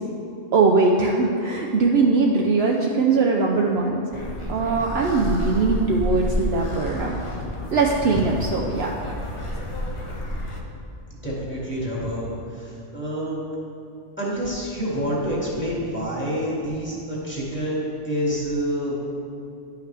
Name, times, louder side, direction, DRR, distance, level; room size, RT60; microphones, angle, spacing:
voice 1, 0.5-4.0 4.5-7.2 7.7-8.9, right 4 dB, 65° right, 0 dB, 0.8 m, -21 dB
sound 1, 4.1-10.6, left 1 dB, 30° left, 0.8 m, -30 dB
voice 2, 11.1-13.4 14.2-19.0, equal, 10° left, -6 dB, 1.9 m, -27 dB
11.0 x 5.7 x 3.3 m, 2.8 s
omnidirectional pair, 1.3 m